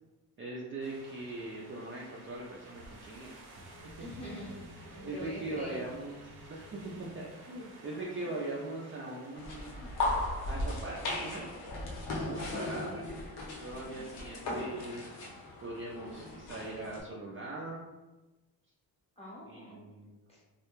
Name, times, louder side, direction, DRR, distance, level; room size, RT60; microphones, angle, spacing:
voice 1, 0.4-3.5 4.3-4.4 5.0-6.2 6.5-10.0 10.4-11.5 12.1-13.0 13.6-15.0 15.6-17.8 19.5-20.2, right 2 dB, 35° right, -4 dB, 0.4 m, -41 dB
sound 1, 0.8-11.4, right 1 dB, 75° right, 0.8 m, -52 dB
voice 2, 4.0-5.8 7.9-8.0 8.2-8.3 13.8-14.4 19.2-19.8 20.3-20.4, equal, 15° left, -5 dB, 0.8 m, -45 dB
sound 2, 9.4-17.0, left 2 dB, 70° left, 0.7 m, -37 dB
2.3 x 2.1 x 3.0 m, 1.1 s
cardioid pair, 120°, 40 cm